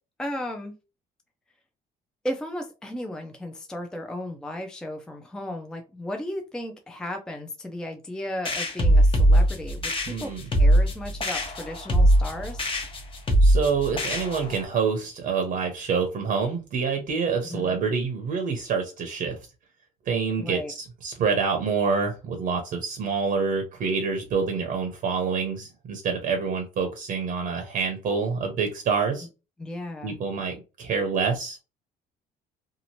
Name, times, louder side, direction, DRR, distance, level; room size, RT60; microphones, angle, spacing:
voice 1, 0.2-0.7 2.2-10.3 10.6-12.7 17.4-17.8 20.4-20.7 29.6-30.2, left 1 dB, 5° left, 4 dB, 0.4 m, -35 dB
sound 1, 8.5-14.6, right 1 dB, 30° left, 0.8 m, -21 dB
voice 2, 10.1-10.4 13.4-19.4 20.1-20.6 21.0-29.3 30.0-31.6, right 5 dB, 55° right, 4 dB, 0.8 m, -27 dB
2.8 x 2.5 x 2.8 m, 0.30 s
cardioid pair, 110°, 17 cm